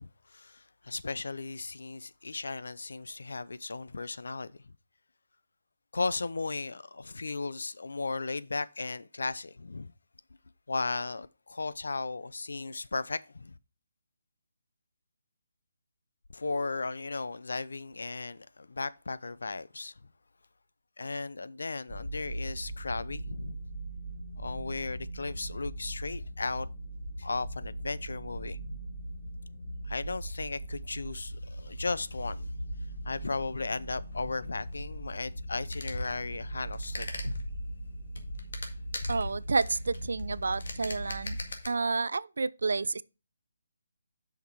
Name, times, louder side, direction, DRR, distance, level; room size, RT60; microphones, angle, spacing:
voice 1, 0.0-4.5 5.9-9.9 10.7-13.5 16.3-19.9 21.0-23.6 24.4-26.7 27.2-28.8 29.9-32.5 33.0-37.3, left 3 dB, 90° left, 0.6 m, -36 dB
sound 1, 21.9-41.5, right 1 dB, 5° left, 2.5 m, -40 dB
sound 2, 33.4-41.7, left 2 dB, 65° left, 1.8 m, -41 dB
voice 2, 39.1-41.4 41.7-43.0, right 4 dB, 70° right, 0.4 m, -30 dB
7.1 x 5.9 x 4.6 m
hypercardioid pair, 175°, 0 cm